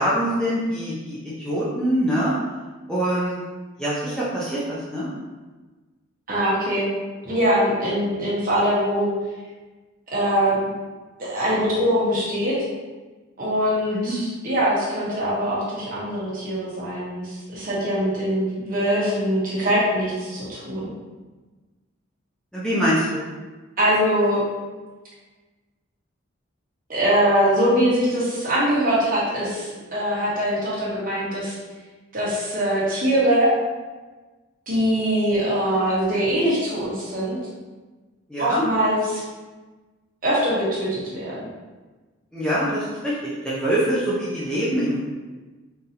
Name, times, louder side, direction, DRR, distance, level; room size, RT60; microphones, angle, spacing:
voice 1, 0.0-2.3 2.9-3.4 3.8-5.1 13.9-14.2 22.5-23.2 38.3-38.6 42.3-45.0, equal, 5° left, -9 dB, 0.5 m, -24 dB
voice 2, 6.3-6.9 7.2-9.1 10.1-10.7 11.2-12.6 13.4-20.9 23.8-24.4 26.9-31.6 32.1-33.5 34.7-37.4 38.4-39.2 40.2-41.4, equal, 40° right, -7 dB, 1.1 m, -22 dB
3.8 x 2.7 x 2.8 m, 1.3 s
head